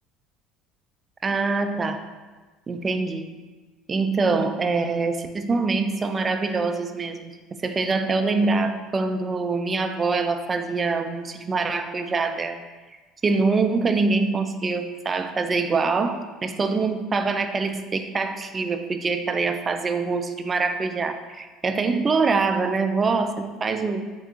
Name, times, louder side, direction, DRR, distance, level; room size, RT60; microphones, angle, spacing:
voice 1, 1.2-2.0 2.7-3.4 3.9-7.3 7.6-12.6 13.2-24.0, right 4 dB, 30° right, 8 dB, 0.3 m, -24 dB
3.4 x 3.3 x 2.8 m, 1.3 s
supercardioid pair, 85°, 0 cm